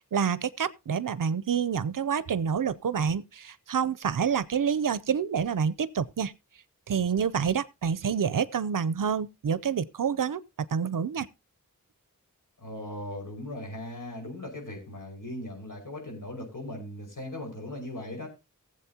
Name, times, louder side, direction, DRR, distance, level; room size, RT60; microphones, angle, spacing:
voice 1, 0.1-6.3 6.9-10.4 10.7-11.3, right 7 dB, 70° right, 0.6 m, -28 dB
voice 2, 12.6-18.3, left 1 dB, 65° left, 5.4 m, -38 dB
18.0 x 7.7 x 2.8 m
wide cardioid pair, 60°, 33 cm